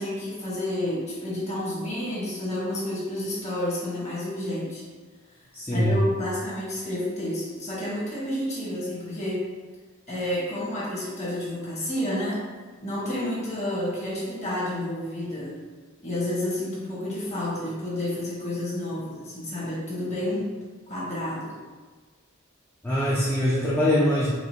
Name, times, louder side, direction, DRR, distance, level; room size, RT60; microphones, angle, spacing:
voice 1, 0.0-4.8 5.7-9.5 10.1-12.4 12.8-15.6 16.0-20.5 20.9-21.5, left 1 dB, 35° left, -6 dB, 1.3 m, -30 dB
voice 2, 5.5-6.0 22.8-24.3, equal, 10° left, -8 dB, 0.5 m, -23 dB
4.8 x 2.6 x 2.8 m, 1.4 s
head